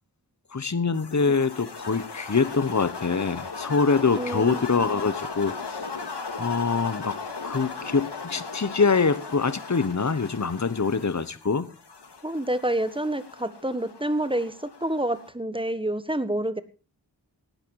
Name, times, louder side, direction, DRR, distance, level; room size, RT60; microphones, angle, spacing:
voice 1, 0.5-5.8 6.4-7.2 7.4-11.7, left 4 dB, 45° left, 15 dB, 1.3 m, -24 dB
sound 1, 0.9-15.3, left 4 dB, 80° left, 2.5 m, -38 dB
voice 2, 4.1-4.7 12.2-14.5 14.8-16.6, right 1 dB, 10° right, 13 dB, 1.6 m, -28 dB
18.5 x 12.0 x 4.8 m, 0.34 s
wide cardioid pair, 55°, 40 cm